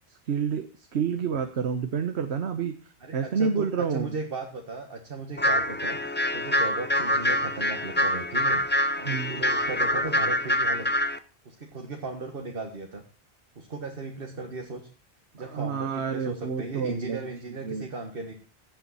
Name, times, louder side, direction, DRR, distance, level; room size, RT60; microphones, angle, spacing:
voice 1, 0.3-2.7 3.1-4.2 9.0-9.4 15.4-17.2 17.6-17.9, right 6 dB, 80° right, 7 dB, 1.3 m, -29 dB
voice 2, 3.0-8.6 9.0-10.9 11.5-13.0 13.6-14.9 15.3-18.3, right 3 dB, 60° right, 2 dB, 1.8 m, -36 dB
sound 1, 5.4-11.2, left 1 dB, 15° left, 0.5 m, -25 dB
16.0 x 8.9 x 4.1 m, 0.33 s
omnidirectional pair, 1.1 m